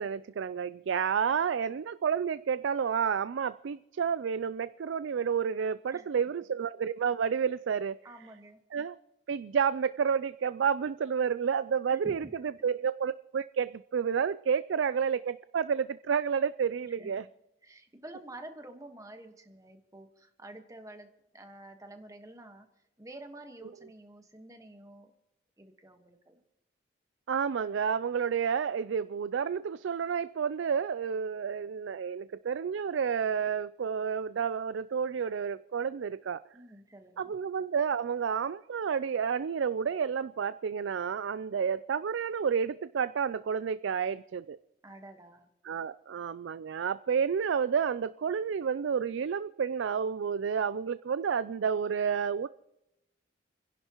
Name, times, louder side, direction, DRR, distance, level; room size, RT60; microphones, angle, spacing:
voice 1, 0.0-8.0 8.7-9.0 9.3-17.2 27.3-36.4 37.2-44.6 45.6-52.5, right 7 dB, 80° right, 0.4 m, -30 dB
voice 2, 8.0-8.6 11.9-12.3 16.8-17.1 17.6-21.1 21.3-22.7 23.0-25.1 25.6-26.4 36.5-37.4 44.8-45.5, right 1 dB, 20° right, 1.4 m, -49 dB
29.5 x 11.0 x 3.0 m
head